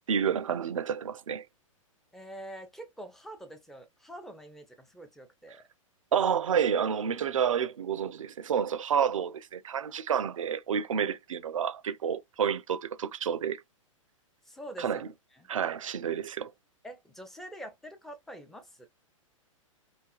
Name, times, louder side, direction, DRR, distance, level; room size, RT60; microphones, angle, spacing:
voice 1, 0.1-1.4 6.1-13.6 14.8-15.1 15.5-16.5, right 8 dB, 70° right, 0.4 m, -29 dB
voice 2, 2.1-5.6 14.5-15.0 15.3-15.5 16.8-18.9, right 1 dB, ahead, 0.5 m, -45 dB
2.6 x 2.3 x 2.3 m
figure-of-eight pair, 110°, 17 cm